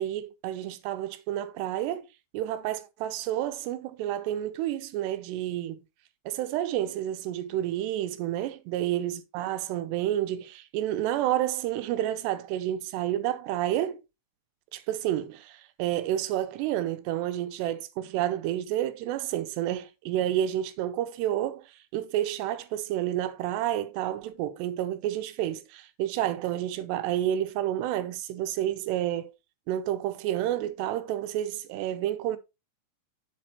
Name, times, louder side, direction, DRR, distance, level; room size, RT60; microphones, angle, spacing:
voice 1, 0.0-2.1 2.3-5.8 6.3-14.0 14.7-29.3 29.7-32.4, right 12 dB, 85° right, 3.0 m, -30 dB
7.7 x 7.7 x 3.0 m
omnidirectional pair, 4.8 m